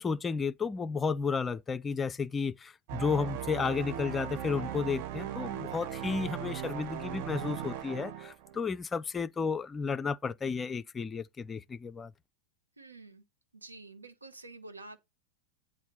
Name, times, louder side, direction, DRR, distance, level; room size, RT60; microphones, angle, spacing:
voice 1, 0.0-12.1, left 5 dB, 15° left, 0.4 m, -32 dB
sound 1, 2.9-8.7, right 11 dB, 45° right, 0.6 m, -38 dB
voice 2, 12.8-13.2 13.5-15.0, right 2 dB, 80° right, 1.0 m, -48 dB
8.3 x 3.6 x 5.2 m
figure-of-eight pair, 90°, 0 cm